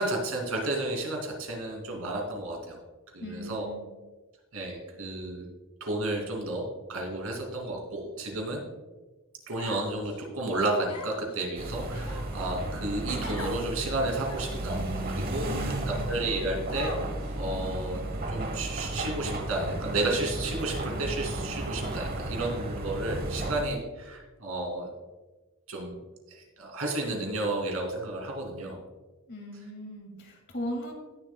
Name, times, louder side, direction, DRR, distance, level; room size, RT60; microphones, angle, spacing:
voice 1, 0.0-2.8 3.1-3.7 4.5-5.5 5.8-8.6 9.5-18.0 18.3-24.9 25.7-26.0 26.3-28.8, right 2 dB, 80° right, 0 dB, 2.7 m, -32 dB
voice 2, 3.2-3.8 15.5-16.0 29.3-30.9, equal, 50° left, 1 dB, 2.3 m, -38 dB
Human voice, 9.6-10.2 10.9-11.3 11.9-12.5 13.2-13.6 14.2-14.6 15.3-15.4 16.7-17.3, left 3 dB, 85° left, 1.8 m, -40 dB
sound 1, 11.6-23.6, right 1 dB, 45° right, 1.1 m, -34 dB
18.0 x 7.2 x 2.3 m, 1.2 s
head